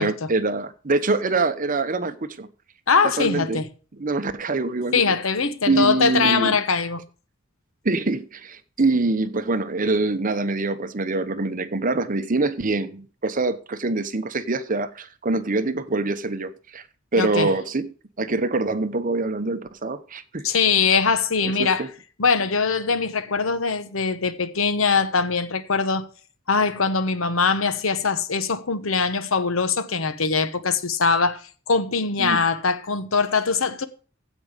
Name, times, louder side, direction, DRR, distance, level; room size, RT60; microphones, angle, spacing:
voice 1, 0.0-2.5 3.2-3.6 4.0-5.0 5.7-6.6 7.8-16.8 17.1-17.9 18.2-20.5 21.4-21.9 32.2-32.4, right 3 dB, 40° right, 0.9 m, -24 dB
voice 2, 2.9-3.7 4.9-7.1 17.2-17.5 20.4-21.8 22.2-26.1 26.5-31.4 31.7-33.9, left 5 dB, 80° left, 1.1 m, -22 dB
15.5 x 5.3 x 5.1 m
head